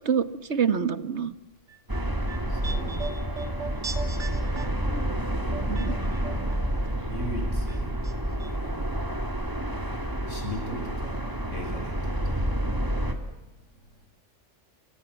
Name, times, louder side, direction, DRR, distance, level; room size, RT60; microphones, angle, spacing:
voice 1, 0.5-1.3 5.7-6.0, right 7 dB, 65° right, 14 dB, 1.6 m, -25 dB
sound 1, 1.7-6.9 7.2-8.1 8.4-8.5, right 4 dB, 85° right, 3.5 m, -40 dB
sound 2, 1.9-13.1, right 1 dB, 15° right, 3.2 m, -29 dB
voice 2, 2.5-3.3 6.8-8.0 8.4-9.0 10.3-12.5, left 1 dB, 80° left, 2 dB, 8.3 m, -39 dB
29.0 x 25.5 x 7.3 m, 0.96 s
omnidirectional pair, 1.2 m